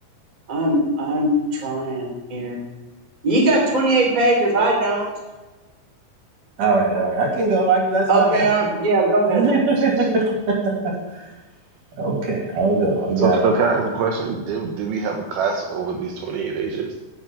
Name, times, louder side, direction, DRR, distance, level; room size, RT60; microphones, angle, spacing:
voice 1, 0.5-2.6 3.2-5.1 8.1-9.4, right 2 dB, 10° right, -1 dB, 2.4 m, -20 dB
voice 2, 6.6-8.5 9.3-10.2 10.6-10.9 12.0-13.4, right 3 dB, 55° right, 0 dB, 3.7 m, -20 dB
voice 3, 9.8-10.1 13.2-16.9, right 5 dB, 75° right, 3 dB, 2.9 m, -24 dB
11.0 x 8.2 x 9.0 m, 1.2 s
omnidirectional pair, 4.7 m